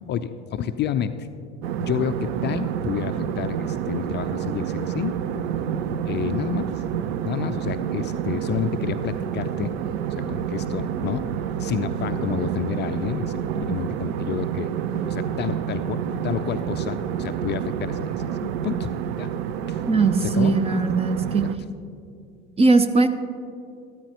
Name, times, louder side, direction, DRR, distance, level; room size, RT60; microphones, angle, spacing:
voice 1, 0.1-1.3 1.8-5.2 6.1-6.7 7.2-9.7 10.1-11.3 11.6-13.4 13.7-14.7 15.0-18.9 19.2-19.3 19.7-19.8 20.2-20.6, left 9 dB, 30° left, 10 dB, 0.4 m, -29 dB
sound 1, 1.6-21.5, right 9 dB, 65° right, 0.6 m, -28 dB
voice 2, 19.9-21.5 22.6-23.1, right 3 dB, 20° right, 11 dB, 0.6 m, -19 dB
14.0 x 13.0 x 3.0 m, 2.4 s
figure-of-eight pair, 70°, 34 cm